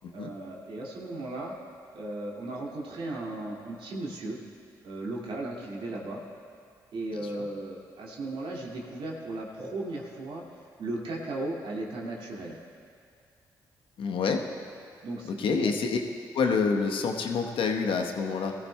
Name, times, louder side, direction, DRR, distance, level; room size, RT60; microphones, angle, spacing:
voice 1, 0.1-1.6 1.9-4.4 4.8-6.2 6.9-12.6 15.0-15.8, right 2 dB, 65° right, -3 dB, 2.2 m, -36 dB
voice 2, 7.1-7.5 14.0-14.4 15.4-16.0 16.3-18.5, left 5 dB, 70° left, 3 dB, 1.0 m, -27 dB
18.0 x 14.5 x 2.2 m, 2.4 s
hypercardioid pair, 45°, 10 cm